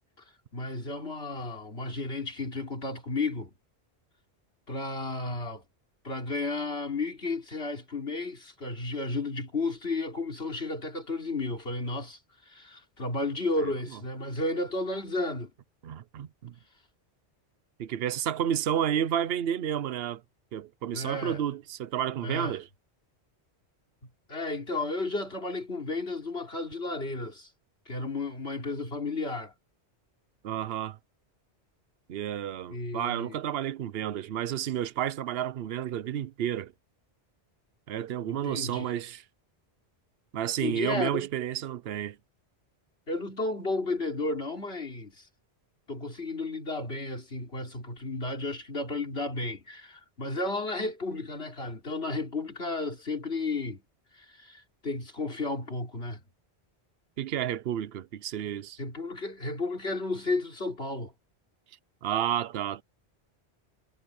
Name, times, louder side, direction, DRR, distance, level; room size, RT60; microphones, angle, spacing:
voice 1, 0.5-3.5 4.7-5.6 6.0-12.2 12.5-15.5 20.9-21.4 22.2-22.6 24.3-27.5 27.9-29.5 32.7-33.4 38.3-38.9 40.6-41.3 43.1-45.2 45.9-53.8 54.2-56.2 58.8-61.1, left 2 dB, 65° left, 3.9 m, -33 dB
voice 2, 15.8-16.5 17.8-20.2 20.5-22.7 30.4-31.0 32.1-36.7 37.9-39.2 40.3-42.2 57.2-58.8 62.0-62.8, right 10 dB, 65° right, 0.9 m, -31 dB
omnidirectional pair, 1.1 m